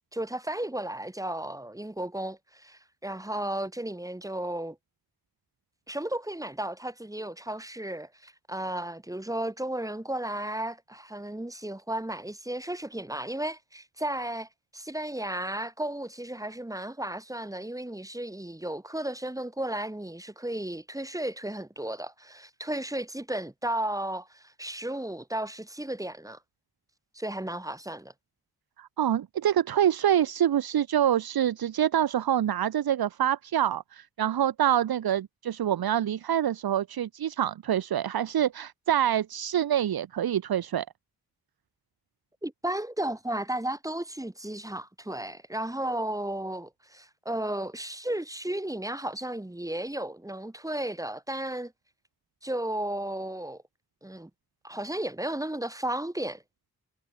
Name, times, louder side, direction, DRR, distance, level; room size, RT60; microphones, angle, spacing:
voice 1, 0.1-4.8 5.9-26.4 27.1-28.1 42.4-51.7 52.4-53.6 54.0-54.3 54.6-56.4, right 1 dB, 10° right, 0.9 m, -34 dB
voice 2, 28.8-40.9, right 10 dB, 75° right, 0.6 m, -26 dB
wide cardioid pair, 75°, 37 cm